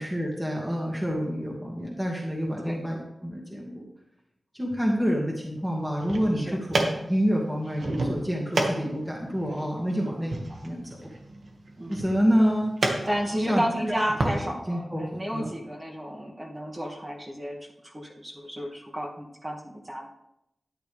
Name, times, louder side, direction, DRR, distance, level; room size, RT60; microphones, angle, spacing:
voice 1, 0.0-3.8 4.5-11.1 11.9-12.8 13.5-13.6 14.3-14.4 14.7-15.5, equal, 10° right, -2 dB, 2.1 m, -28 dB
sound 1, 5.8-14.4, right 2 dB, 70° right, 1.8 m, -32 dB
voice 2, 13.1-17.6 17.8-20.1, equal, 25° right, -3 dB, 2.4 m, -32 dB
13.0 x 9.6 x 3.5 m, 0.81 s
wide cardioid pair, 85°, 0 cm